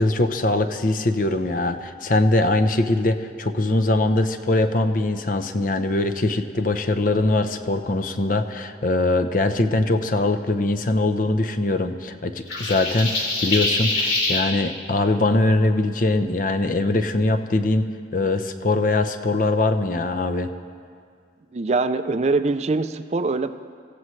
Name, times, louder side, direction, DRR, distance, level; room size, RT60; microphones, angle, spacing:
voice 1, 0.0-17.9 18.1-20.5, left 2 dB, 50° left, 9 dB, 0.7 m, -22 dB
sound 1, 12.5-14.4, left 2 dB, 75° left, 3.2 m, -24 dB
voice 2, 21.5-23.5, right 3 dB, 35° right, 11 dB, 0.4 m, -23 dB
25.0 x 15.0 x 3.2 m, 2.1 s
head